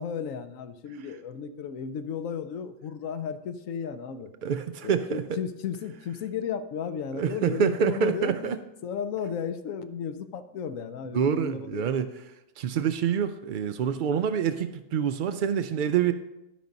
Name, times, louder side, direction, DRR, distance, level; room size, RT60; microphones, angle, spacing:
voice 1, 0.0-4.3 4.8-12.0, left 7 dB, 80° left, 10 dB, 1.1 m, -34 dB
voice 2, 4.4-5.2 7.2-8.6 11.1-12.1 12.6-16.1, right 7 dB, 80° right, 10 dB, 0.4 m, -26 dB
12.5 x 5.2 x 5.2 m, 0.92 s
omnidirectional pair, 1.4 m